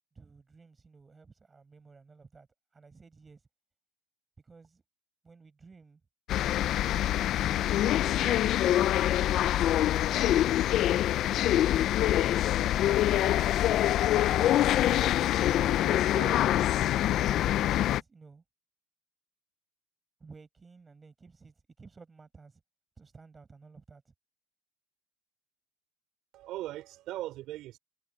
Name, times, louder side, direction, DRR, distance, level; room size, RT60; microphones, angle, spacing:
voice 1, 0.1-3.5 4.4-4.8 5.2-6.0 7.3-11.0 11.5-15.1 17.6-18.4 20.2-22.6 23.0-24.1, right 4 dB, 15° right, 5.5 m, -54 dB
sound 1, 6.3-18.0, left 13 dB, 40° left, 0.4 m, -25 dB
voice 2, 15.6-16.5 26.3-27.8, right 15 dB, 45° right, 5.3 m, -40 dB
cardioid pair, 165°, 0 cm